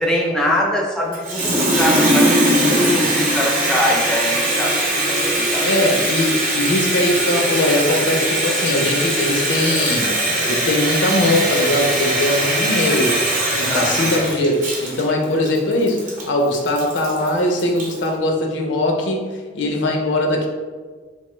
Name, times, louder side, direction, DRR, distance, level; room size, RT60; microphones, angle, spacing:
voice 1, 0.0-4.7 5.0-5.7 13.7-14.1, equal, 5° left, -2 dB, 0.4 m, -23 dB
Water tap faucet, 1.1-18.0, right 1 dB, 50° right, 0.7 m, -20 dB
voice 2, 5.6-13.2 13.5-19.3 19.5-20.5, left 1 dB, 85° left, 2 dB, 0.5 m, -20 dB
2.8 x 2.2 x 2.9 m, 1.5 s
head